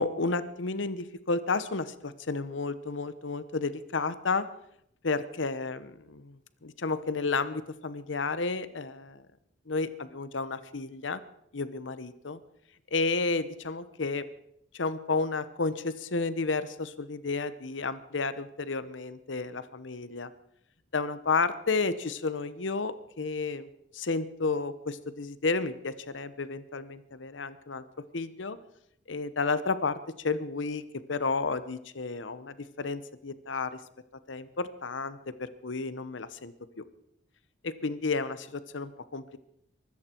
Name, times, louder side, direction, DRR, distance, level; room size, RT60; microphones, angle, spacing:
voice 1, 0.0-4.5 5.0-9.2 9.7-11.2 11.5-12.4 12.9-14.3 14.7-20.3 20.9-23.7 23.9-27.8 28.1-28.6 29.1-30.8 31.1-33.8 34.3-36.8 37.6-39.4, left 4 dB, 80° left, 14 dB, 1.0 m, -32 dB
23.5 x 13.5 x 4.5 m, 0.75 s
head